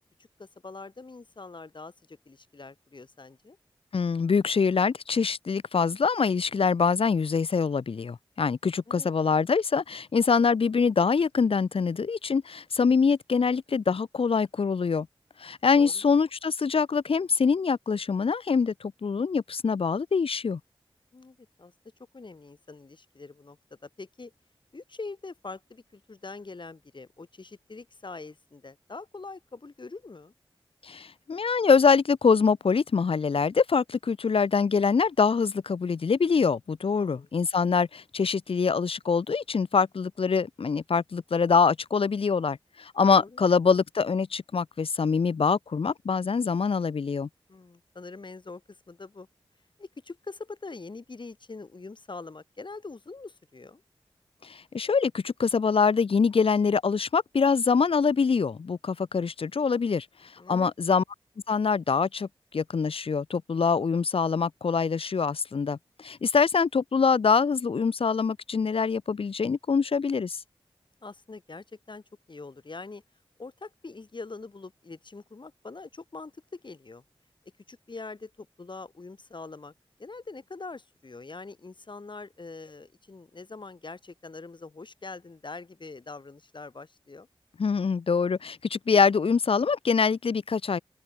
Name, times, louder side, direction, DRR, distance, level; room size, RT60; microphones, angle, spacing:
voice 1, 0.4-3.6 8.9-9.1 15.7-16.0 21.1-21.7 22.1-23.6 23.8-24.3 24.7-30.3 36.9-37.3 43.1-43.4 47.5-48.6 48.9-49.3 49.8-53.8 60.4-60.7 71.0-72.0 72.3-73.0 73.4-77.0 77.7-79.7 80.0-87.3, left 3 dB, 55° left, 4.7 m, -43 dB
voice 2, 3.9-15.1 15.4-20.6 30.8-47.3 54.4-60.1 60.5-61.0 61.5-62.3 62.5-70.4 87.6-90.8, left 5 dB, 75° left, 1.2 m, -24 dB
open air
cardioid pair, 45°, 10 cm